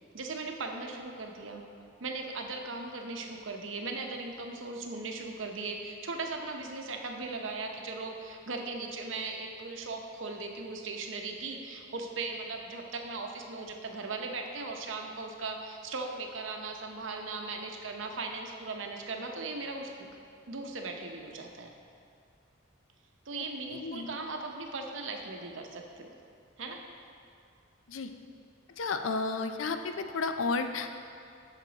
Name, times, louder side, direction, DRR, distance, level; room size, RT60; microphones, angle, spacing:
voice 1, 0.1-1.6 2.0-20.1 20.5-21.7 23.3-26.1 26.6-26.8, right 3 dB, 75° right, 3 dB, 0.8 m, -38 dB
voice 2, 23.4-24.2 27.9-28.1 28.8-31.0, left 4 dB, 90° left, 7 dB, 0.5 m, -33 dB
8.1 x 6.8 x 4.0 m, 2.4 s
head